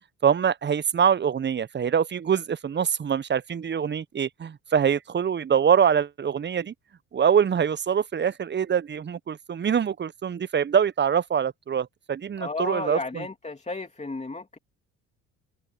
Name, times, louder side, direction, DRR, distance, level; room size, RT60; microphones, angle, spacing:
voice 1, 0.2-6.7 7.1-13.2, right 7 dB, 30° right, 0.9 m, -24 dB
voice 2, 12.4-14.6, left 3 dB, 20° left, 2.9 m, -33 dB
open air
hypercardioid pair, 60°, 37 cm